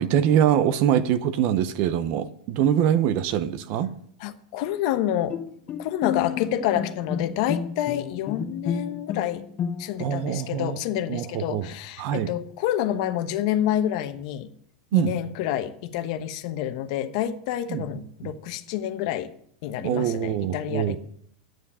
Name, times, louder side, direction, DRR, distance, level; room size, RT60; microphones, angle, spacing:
voice 1, 0.0-3.9 10.0-10.8 11.1-11.7 12.0-12.3 14.9-15.1 17.7-17.8 18.2-18.3 19.8-21.0, right 10 dB, 50° right, 13 dB, 0.9 m, -23 dB
voice 2, 4.2-5.4 5.8-9.5 9.8-14.5 14.9-19.3 19.6-21.0, left 11 dB, 60° left, 9 dB, 1.1 m, -28 dB
Bowed string instrument, 5.3-10.2, left 8 dB, 30° left, 0.7 m, -31 dB
11.0 x 9.3 x 5.6 m, 0.64 s
supercardioid pair, 130°, 4 cm